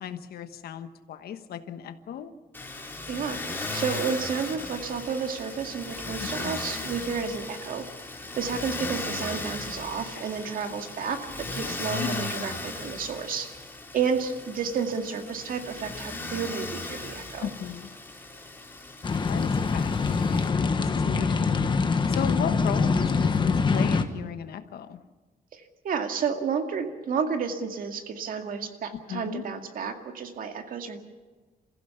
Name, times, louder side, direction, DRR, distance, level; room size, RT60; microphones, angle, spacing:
voice 1, 0.0-2.3 6.2-6.5 10.1-10.2 11.9-12.2 17.4-17.9 19.3-25.0 29.1-29.4, left 9 dB, 85° left, 10 dB, 1.3 m, -36 dB
Motor vehicle (road), 2.5-20.5, left 3 dB, 15° left, 3.3 m, -37 dB
voice 2, 3.1-7.9 8.4-13.5 13.9-17.5 25.5-31.0, right 6 dB, 65° right, 5 dB, 2.2 m, -31 dB
sound 1, 19.0-24.0, left 4 dB, 30° left, 1.2 m, -24 dB
28.0 x 15.5 x 7.1 m, 1.3 s
cardioid pair, 145°, 16 cm